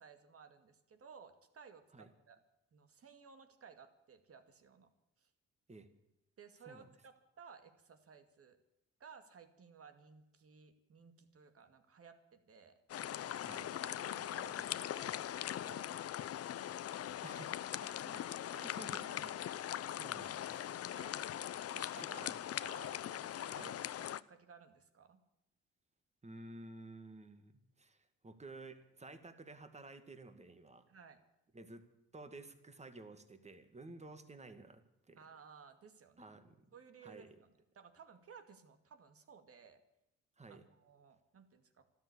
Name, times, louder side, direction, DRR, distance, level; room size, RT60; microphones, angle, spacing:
voice 1, 0.0-2.4 2.7-4.9 5.2-5.3 6.4-8.6 9.0-12.8 13.5-15.9 17.8-18.4 20.9-21.2 21.7-23.8 24.3-25.2 30.9-31.2 35.2-36.4 36.7-37.3 37.7-39.8 40.5-41.9, right 6 dB, 50° right, 8 dB, 2.3 m, -58 dB
sound 1, 12.9-24.2, left 11 dB, 55° left, 0.6 m, -41 dB
voice 2, 17.2-17.6 18.5-20.9 22.0-22.4 23.5-23.7 26.2-27.5 27.8-30.9 31.5-31.8 32.1-35.2 36.2-36.6 37.0-37.4 40.4-40.6, right 2 dB, 20° right, 9 dB, 2.1 m, -53 dB
13.0 x 13.0 x 8.6 m, 0.89 s
cardioid pair, 90°, 30 cm